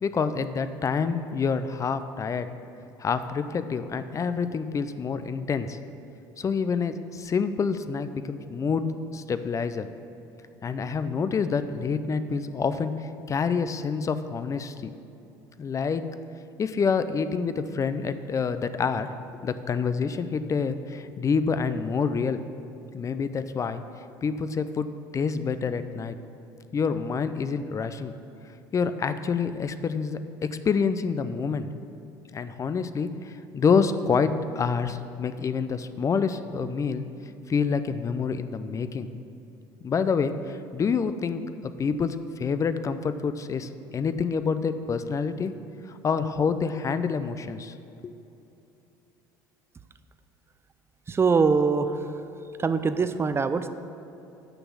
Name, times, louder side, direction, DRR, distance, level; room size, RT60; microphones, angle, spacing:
voice 1, 0.0-2.5 3.0-5.8 6.4-9.9 10.6-14.9 15.6-16.0 16.6-22.4 22.9-23.8 24.2-24.9 25.1-26.2 26.7-28.1 28.7-31.7 32.3-37.0 37.5-39.1 39.8-45.5 45.9-47.7 48.0-48.1, left 5 dB, 30° left, 11 dB, 0.5 m, -27 dB
voice 2, 51.1-52.0 52.6-53.7, right 5 dB, 25° right, 11 dB, 0.5 m, -23 dB
6.8 x 6.1 x 7.2 m, 2.8 s
supercardioid pair, 80°, 10 cm